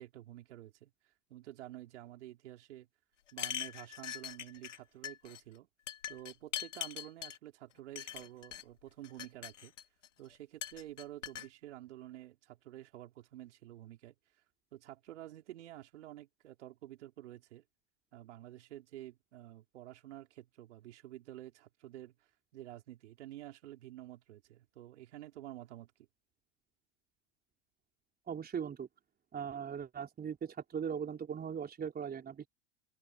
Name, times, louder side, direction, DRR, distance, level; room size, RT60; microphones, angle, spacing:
voice 1, 0.0-2.9 3.3-5.7 6.1-9.7 10.2-14.1 14.7-17.6 18.1-25.9, right 14 dB, 70° right, 4.7 m, -50 dB
sound 1, 3.3-4.8 5.0-5.4 5.9-7.4 8.0-8.6 9.0-10.1 10.6-11.5, left 10 dB, 80° left, 2.1 m, -42 dB
voice 2, 28.3-28.9 29.3-32.5, right 7 dB, 25° right, 4.6 m, -39 dB
hypercardioid pair, 90°, 36 cm